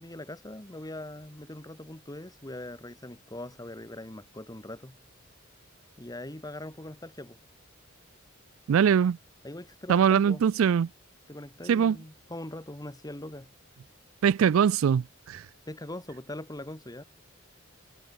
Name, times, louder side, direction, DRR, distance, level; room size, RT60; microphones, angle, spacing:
voice 1, 0.0-5.0 6.0-7.4 9.4-10.4 11.3-13.5 15.7-17.0, left 1 dB, 20° left, 2.0 m, -41 dB
voice 2, 8.7-9.2 9.9-10.9 11.7-12.0 14.2-15.4, right 7 dB, 75° right, 0.3 m, -22 dB
head